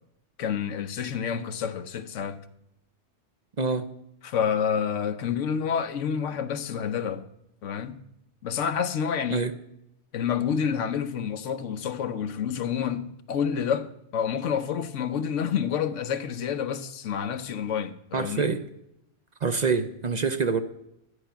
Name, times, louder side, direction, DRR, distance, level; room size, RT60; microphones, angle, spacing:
voice 1, 0.4-2.5 4.2-7.3 7.6-8.0 8.4-9.5 10.1-18.5, left 7 dB, 90° left, 1.1 m, -28 dB
voice 2, 18.1-18.6 19.4-20.6, right 5 dB, 45° right, 0.7 m, -25 dB
12.5 x 9.2 x 5.7 m
omnidirectional pair, 1.2 m